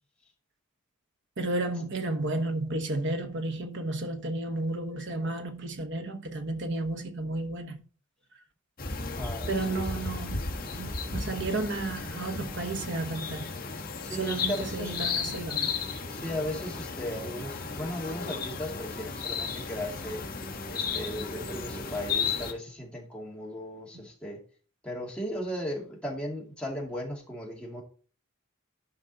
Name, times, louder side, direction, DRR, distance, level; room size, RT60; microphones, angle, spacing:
voice 1, 1.4-7.8 9.5-13.5 14.2-15.7, right 2 dB, 55° right, 1.2 m, -32 dB
sound 1, 8.8-22.5, left 5 dB, 40° left, 1.4 m, -34 dB
voice 2, 9.0-9.9 14.0-15.0 16.1-20.2 20.7-24.4 24.8-27.8, equal, 5° left, 2.3 m, -36 dB
11.0 x 5.3 x 4.1 m
head